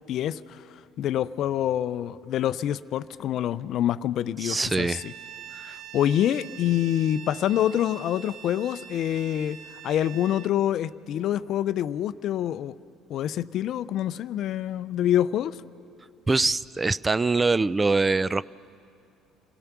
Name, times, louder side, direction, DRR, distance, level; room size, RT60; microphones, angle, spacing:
voice 1, 0.1-0.6 1.0-5.1 5.7-9.6 9.8-12.7 13.1-15.6, left 11 dB, 60° left, 15 dB, 0.5 m, -26 dB
voice 2, 4.4-5.0 5.6-5.8 16.3-18.5, right 3 dB, 20° right, 20 dB, 0.4 m, -24 dB
Bowed string instrument, 4.6-10.5, right 9 dB, 75° right, 1.1 m, -44 dB
27.0 x 17.0 x 6.0 m, 2.5 s
hypercardioid pair, 70°, 0 cm